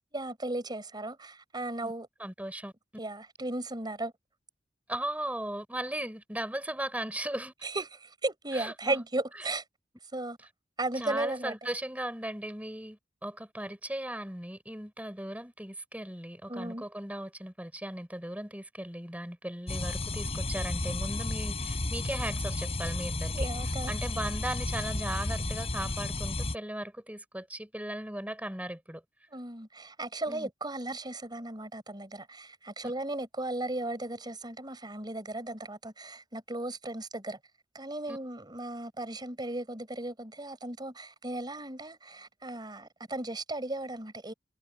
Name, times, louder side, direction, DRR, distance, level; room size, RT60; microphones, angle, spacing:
voice 1, 0.1-2.1 3.0-4.1 7.6-9.6 10.1-10.4 10.8-11.7 16.5-16.8 23.3-24.0 29.3-37.4 37.7-44.3, right 2 dB, 25° right, 5.3 m, -36 dB
voice 2, 2.2-2.7 4.9-7.5 8.5-9.0 11.0-23.5 23.9-29.0 30.3-30.5 32.8-32.9 38.1-38.2, right 1 dB, 10° right, 6.8 m, -37 dB
sound 1, 19.7-26.5, left 2 dB, 35° left, 6.8 m, -33 dB
head